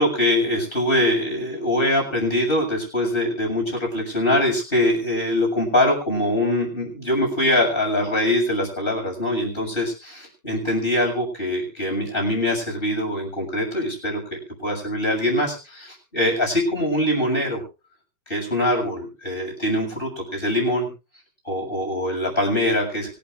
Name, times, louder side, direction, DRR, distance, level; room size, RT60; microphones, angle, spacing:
voice 1, 0.0-17.6 18.3-20.9 21.5-23.1, left 1 dB, 10° left, 0 dB, 7.1 m, -23 dB
24.5 x 12.5 x 2.6 m, 0.32 s
omnidirectional pair, 5.2 m